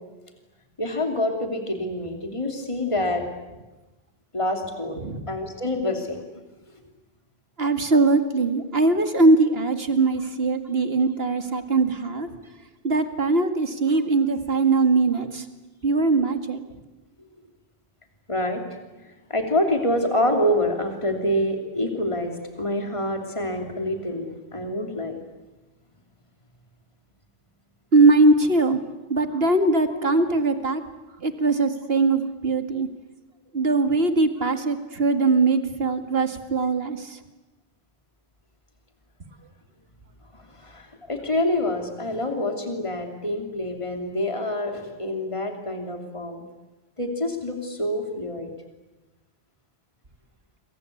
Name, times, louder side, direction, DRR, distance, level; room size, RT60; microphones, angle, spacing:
voice 1, 0.8-3.2 4.3-5.0 5.3-6.2 18.3-18.6 19.3-25.2 29.9-30.0 40.6-46.4 47.0-48.5, left 1 dB, 30° left, 4 dB, 3.0 m, -26 dB
voice 2, 7.6-12.3 12.8-15.5 15.8-16.6 27.9-28.8 29.1-30.8 31.2-32.9 33.5-37.2, right 3 dB, 70° right, 7 dB, 2.3 m, -21 dB
28.5 x 23.5 x 8.5 m, 1.1 s
omnidirectional pair, 1.1 m